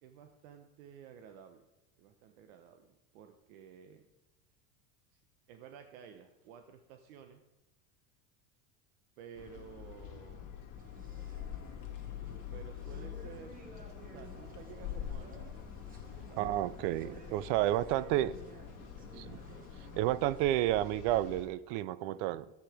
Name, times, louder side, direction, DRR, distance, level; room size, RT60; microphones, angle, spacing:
voice 1, 0.0-1.7 2.0-4.1 5.1-5.2 5.5-7.4 9.2-10.6 12.5-13.6 14.0-15.7 16.2-16.5 17.5-18.2 19.0-19.4, right 7 dB, 85° right, 1.1 m, -53 dB
sound 1, 9.3-21.5, left 10 dB, 50° left, 2.1 m, -45 dB
sound 2, 10.8-20.4, right 3 dB, 20° right, 1.1 m, -54 dB
voice 2, 16.4-18.3 19.2-19.4 20.0-22.5, right 14 dB, 65° right, 0.6 m, -31 dB
12.5 x 8.3 x 5.0 m
cardioid pair, 150°, 40 cm